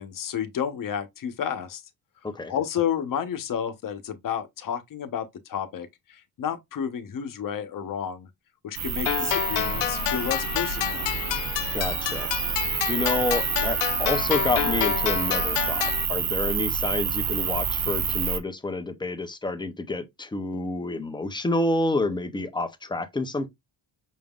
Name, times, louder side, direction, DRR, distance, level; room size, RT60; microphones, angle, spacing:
voice 1, 0.0-1.8 2.5-8.3 8.6-11.1, left 8 dB, 50° left, 0.9 m, -31 dB
sound 1, 8.7-18.4, right 7 dB, 45° right, 0.8 m, -28 dB
sound 2, 9.1-16.1, left 13 dB, 85° left, 0.6 m, -29 dB
voice 2, 11.7-12.5 12.8-23.5, left 2 dB, 10° left, 0.6 m, -29 dB
6.2 x 3.6 x 2.3 m
wide cardioid pair, 170°, 42 cm